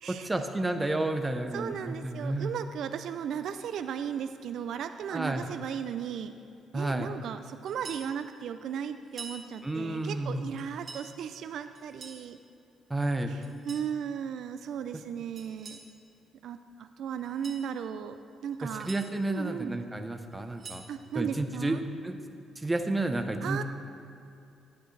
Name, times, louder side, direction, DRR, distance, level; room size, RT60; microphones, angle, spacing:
voice 1, 0.1-2.5 5.1-5.5 6.7-7.1 9.6-10.5 12.9-13.3 18.6-20.8 21.1-22.2 22.6-23.6, right 2 dB, 15° right, 6 dB, 0.7 m, -31 dB
voice 2, 1.5-6.3 6.7-12.4 13.3-15.8 16.4-18.9 19.3-19.7 20.9-21.8 23.4-23.6, right 8 dB, 70° right, 9 dB, 0.3 m, -36 dB
sound 1, 7.7-8.1 9.0-9.4 10.6-11.1 11.7-12.2 13.4-13.9 15.4-15.9 17.2-17.6 18.5-19.0 20.3-20.9, right 4 dB, 45° right, 1.7 m, -46 dB
10.5 x 9.0 x 3.2 m, 2.6 s
cardioid pair, 90°, 0 cm